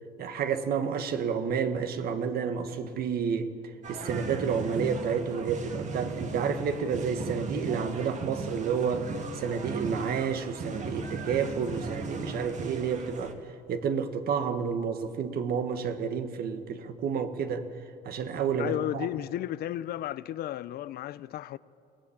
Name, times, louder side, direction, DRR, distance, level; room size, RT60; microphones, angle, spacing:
voice 1, 0.2-3.5 3.9-13.3 13.7-17.7 18.0-19.1, right 6 dB, 65° right, 1.6 m, -30 dB
sound 1, 3.8-13.3, right 3 dB, 45° right, 2.0 m, -37 dB
voice 2, 18.6-21.6, left 12 dB, 65° left, 0.6 m, -33 dB
23.0 x 18.0 x 8.7 m
cardioid pair, 110°, 17 cm